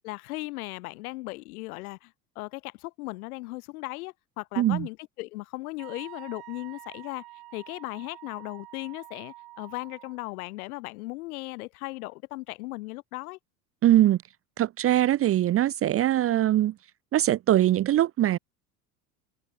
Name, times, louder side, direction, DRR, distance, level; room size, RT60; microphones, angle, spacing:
voice 1, 0.0-7.2 7.5-13.4, left 21 dB, 60° left, 3.8 m, -37 dB
voice 2, 4.6-4.9 13.8-14.2 14.6-16.7 17.1-18.4, right 13 dB, 30° right, 0.8 m, -22 dB
Wind instrument woodwind instrument, 5.8-10.2, right 18 dB, 50° right, 7.7 m, -47 dB
open air
figure-of-eight pair, 75°, 49 cm